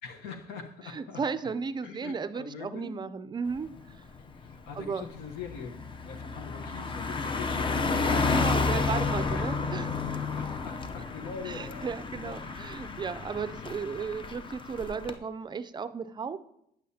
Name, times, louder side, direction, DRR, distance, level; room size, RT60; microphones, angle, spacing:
voice 1, 0.0-1.2 1.8-3.0 4.3-9.4 10.3-11.9 12.2-12.4 13.5-13.8, left 5 dB, 90° left, 6 dB, 1.0 m, -43 dB
voice 2, 0.8-3.7 4.7-5.1 8.2-10.0 11.4-16.4, right 5 dB, 25° right, 12 dB, 0.4 m, -35 dB
Car passing by, 3.6-3.8 4.2-15.2, left 4 dB, 30° left, 0.6 m, -31 dB
9.2 x 8.3 x 2.8 m, 0.77 s
cardioid pair, 110°, 17 cm